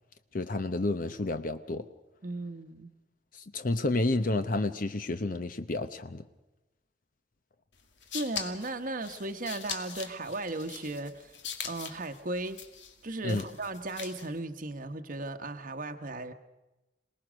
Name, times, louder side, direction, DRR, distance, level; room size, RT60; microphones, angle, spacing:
voice 1, 0.3-1.8 3.3-6.2 13.2-13.4, left 2 dB, 45° left, 10 dB, 0.8 m, -30 dB
voice 2, 2.2-2.9 8.1-11.4 11.6-12.6 13.0-16.3, right 2 dB, 45° right, 7 dB, 1.0 m, -36 dB
sound 1, 7.8-14.4, left 7 dB, 85° left, 2.3 m, -42 dB
27.5 x 19.0 x 6.3 m, 1.1 s
head